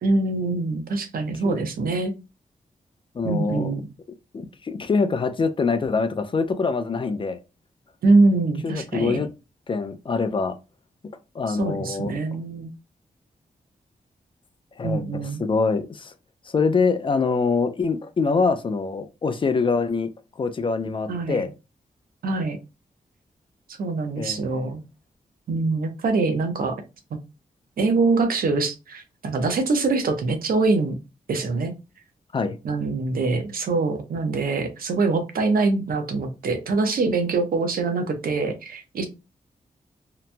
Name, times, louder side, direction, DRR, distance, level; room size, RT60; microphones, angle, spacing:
voice 1, 0.0-2.1 3.2-3.8 8.0-9.2 11.5-12.7 14.8-15.5 21.1-21.4 22.2-22.6 23.8-24.8 25.5-26.8 27.1-27.2 27.8-31.0 31.3-31.7 32.6-39.1, right 3 dB, 80° right, 0.6 m, -24 dB
voice 2, 3.1-3.7 4.3-7.4 8.6-9.3 9.7-10.6 11.3-12.1 14.8-16.1 16.5-20.1 20.4-21.5 24.2-24.4 32.3-32.6, left 4 dB, 35° left, 0.3 m, -24 dB
2.9 x 2.2 x 2.5 m
wide cardioid pair, 120°, 15 cm